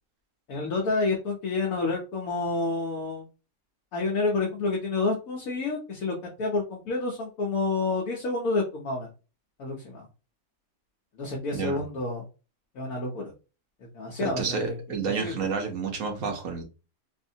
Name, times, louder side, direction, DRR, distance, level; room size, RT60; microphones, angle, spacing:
voice 1, 0.5-3.3 3.9-9.1 9.6-10.1 11.2-12.2 12.7-13.3 13.8-14.8 15.1-15.4, left 3 dB, 70° left, -2 dB, 1.2 m, -29 dB
voice 2, 11.5-11.8 14.2-16.6, right 5 dB, 65° right, 3 dB, 1.2 m, -30 dB
3.5 x 2.6 x 2.7 m, 0.32 s
omnidirectional pair, 1.5 m